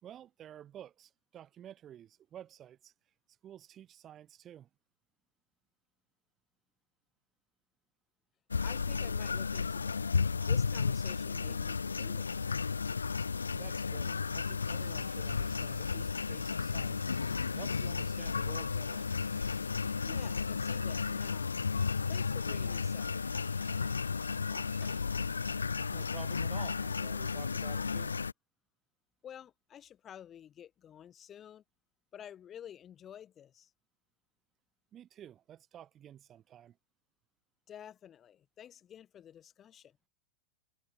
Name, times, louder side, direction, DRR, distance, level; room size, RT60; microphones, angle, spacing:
voice 1, 0.0-2.9 3.4-4.7 13.5-17.1 17.5-19.1 24.5-25.5 25.9-28.2 34.9-36.8, right 10 dB, 30° right, 1.0 m, -51 dB
sound 1, 8.5-28.3, left 5 dB, 75° left, 0.4 m, -33 dB
voice 2, 8.6-10.1 10.4-12.6 20.0-21.5 22.1-23.1 29.2-31.6 32.1-33.7 37.7-40.0, left 9 dB, 25° left, 1.1 m, -51 dB
sound 2, 14.3-26.2, right 13 dB, 60° right, 3.1 m, -61 dB
figure-of-eight pair, 90°, 0 cm